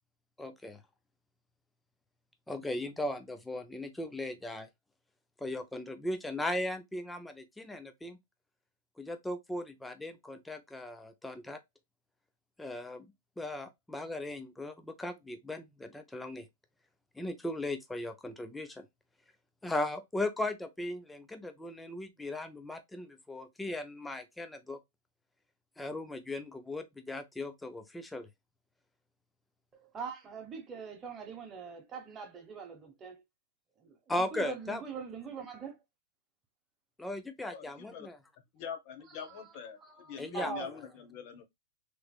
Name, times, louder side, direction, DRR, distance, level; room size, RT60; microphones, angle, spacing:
voice 1, 0.4-0.8 2.5-4.7 5.4-8.2 9.0-11.6 12.6-13.1 13.4-16.5 17.1-18.9 19.6-24.8 25.8-28.3 34.1-34.8 37.0-38.2 40.2-40.5, left 1 dB, 5° left, 0.5 m, -37 dB
voice 2, 29.9-33.2 33.8-35.8 39.8-40.7, right 6 dB, 20° right, 1.1 m, -42 dB
voice 3, 37.5-38.1 38.5-39.8 40.1-41.4, left 7 dB, 45° left, 1.1 m, -43 dB
3.2 x 3.1 x 2.3 m
hypercardioid pair, 135°, 0 cm